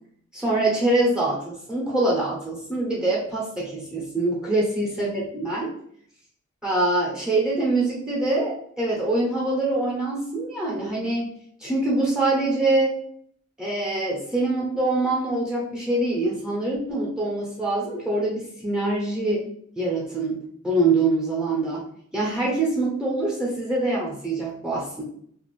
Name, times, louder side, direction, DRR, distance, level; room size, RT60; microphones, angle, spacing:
voice 1, 0.3-5.7 6.6-11.3 11.6-13.0 13.6-19.5 19.8-21.8 22.1-25.0, right 2 dB, 5° right, -3 dB, 0.7 m, -24 dB
2.6 x 2.4 x 3.0 m, 0.63 s
head